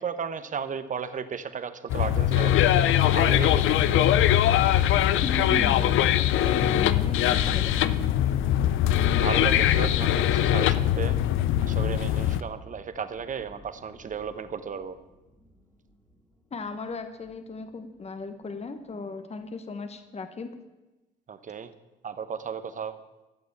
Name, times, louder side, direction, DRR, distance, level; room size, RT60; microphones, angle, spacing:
voice 1, 0.0-4.0 9.2-11.2 11.6-15.0 21.3-21.7 22.0-23.0, right 6 dB, 40° right, 11 dB, 1.0 m, -34 dB
sound 1, 1.9-12.4, left 12 dB, 85° left, 0.6 m, -22 dB
voice 2, 5.2-7.9 16.5-20.5, left 3 dB, 30° left, 9 dB, 1.1 m, -36 dB
sound 2, 7.0-16.4 16.7-16.8 17.1-17.4, equal, 10° left, 2.6 m, -43 dB
13.5 x 6.8 x 8.6 m, 1.1 s
cardioid pair, 90°, 20 cm